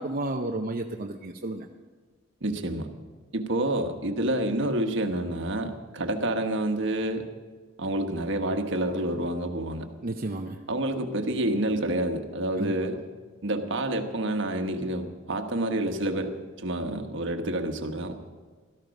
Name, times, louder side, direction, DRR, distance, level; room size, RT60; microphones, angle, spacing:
voice 1, 0.0-1.6 10.0-10.6 12.6-12.7, right 2 dB, 45° right, 2 dB, 0.7 m, -32 dB
voice 2, 2.4-2.9 3.3-7.3 7.8-9.9 10.7-13.0 13.4-18.1, right 1 dB, 65° right, 6 dB, 1.4 m, -28 dB
17.5 x 13.5 x 5.3 m, 1.5 s
head